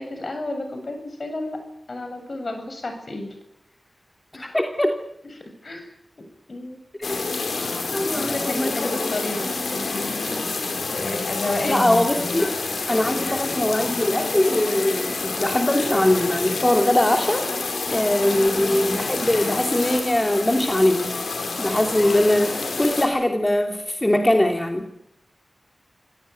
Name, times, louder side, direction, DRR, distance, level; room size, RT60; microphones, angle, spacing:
voice 1, 0.0-1.6 1.9-3.3 4.3-4.5 5.6-5.9 6.5-6.8 8.1-10.4 10.9-12.4 18.3-18.8, left 2 dB, 55° left, 6 dB, 7.5 m, -31 dB
voice 2, 4.5-4.9 7.1-7.3 7.9-8.7 11.6-12.6 12.9-17.5 17.9-21.1 21.6-24.9, left 1 dB, 20° left, 4 dB, 2.9 m, -21 dB
sound 1, 7.0-23.1, left 3 dB, 85° left, 4.7 m, -28 dB
27.0 x 17.5 x 9.5 m, 0.78 s
cardioid pair, 50°, 0 cm